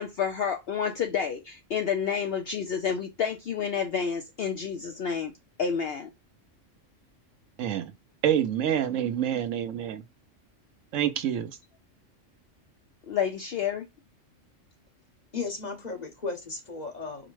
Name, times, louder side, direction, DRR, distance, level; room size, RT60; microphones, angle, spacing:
voice 1, 0.0-5.3 5.6-6.1 13.1-13.9, left 7 dB, 60° left, 0.7 m, -29 dB
voice 2, 7.6-7.9 8.2-10.0 10.9-11.5, right 10 dB, 80° right, 1.1 m, -27 dB
voice 3, 15.3-17.3, left 4 dB, 35° left, 1.2 m, -35 dB
4.9 x 2.1 x 4.6 m
omnidirectional pair, 1.3 m